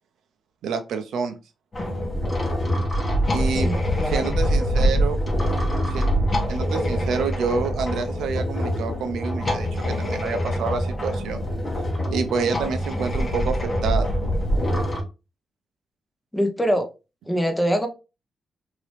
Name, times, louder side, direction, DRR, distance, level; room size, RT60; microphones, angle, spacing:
voice 1, 0.6-1.4 3.3-3.7 4.1-5.2 5.8-6.1 6.5-11.4 12.1-14.3, right 5 dB, 90° right, 7 dB, 0.6 m, -28 dB
sound 1, 1.7-15.0, equal, 35° left, 1.1 m, -24 dB
voice 2, 3.5-4.4 16.3-16.9 17.3-17.9, equal, 10° left, 5 dB, 0.9 m, -24 dB
2.9 x 2.8 x 3.2 m, 0.28 s
cardioid pair, 80°, 0 cm